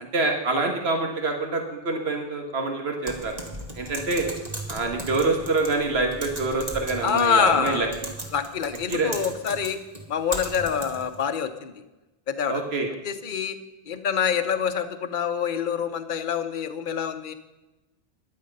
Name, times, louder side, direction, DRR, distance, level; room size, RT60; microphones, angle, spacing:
voice 1, 0.1-3.4 3.7-4.3 4.7-7.9 8.9-9.1 12.5-12.9, right 3 dB, 80° right, 3 dB, 1.9 m, -26 dB
Typing, 3.1-11.2, right 1 dB, 40° right, 2.0 m, -37 dB
voice 2, 7.0-7.9 8.3-9.8 10.1-11.7 12.3-12.6 13.0-13.6 13.9-17.3, left 7 dB, 50° left, 8 dB, 1.0 m, -26 dB
14.5 x 10.5 x 5.4 m, 1.1 s
omnidirectional pair, 1.0 m